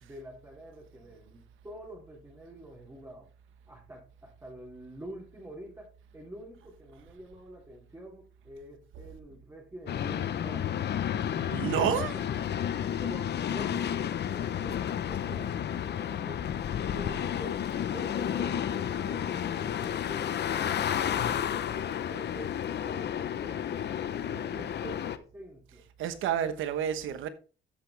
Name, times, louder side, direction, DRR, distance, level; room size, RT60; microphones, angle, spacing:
voice 1, 0.0-3.3 3.7-10.8 11.7-12.0 13.0-14.0 14.3-15.7 16.1-16.5 16.9-20.4 20.9-23.7 24.3-25.9, right 1 dB, 15° right, 3.0 m, -47 dB
sound 1, 9.9-25.2, left 9 dB, 60° left, 0.8 m, -31 dB
voice 2, 11.5-12.3 26.0-27.3, right 9 dB, 85° right, 1.2 m, -30 dB
13.5 x 5.8 x 3.4 m
cardioid pair, 90°, 20 cm